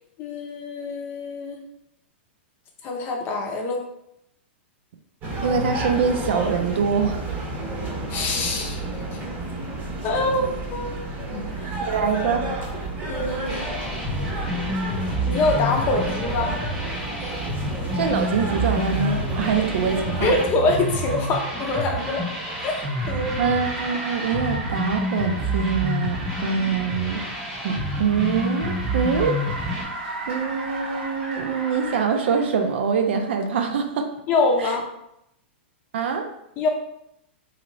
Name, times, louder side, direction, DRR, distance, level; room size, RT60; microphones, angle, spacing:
voice 1, 0.2-1.6 2.8-3.8 8.1-8.8 9.1-9.2 10.0-11.8 13.1-13.7 15.2-16.6 20.2-22.2 22.6-22.8 23.1-23.5 34.3-34.8 36.6-36.7, left 3 dB, 30° left, 1 dB, 0.6 m, -25 dB
sound 1, 5.2-20.4, right 2 dB, 25° right, 0.8 m, -31 dB
voice 2, 5.4-7.2 11.8-12.4 17.9-20.3 23.4-27.2 27.6-29.4 30.3-34.1 34.6-34.7 35.9-36.3, right 6 dB, 70° right, 5 dB, 0.5 m, -24 dB
sound 2, 13.5-29.8, equal, 5° right, 1.1 m, -29 dB
Car, 19.1-32.7, right 2 dB, 90° right, 1.2 m, -36 dB
3.1 x 2.8 x 2.6 m, 0.79 s
hypercardioid pair, 135°, 6 cm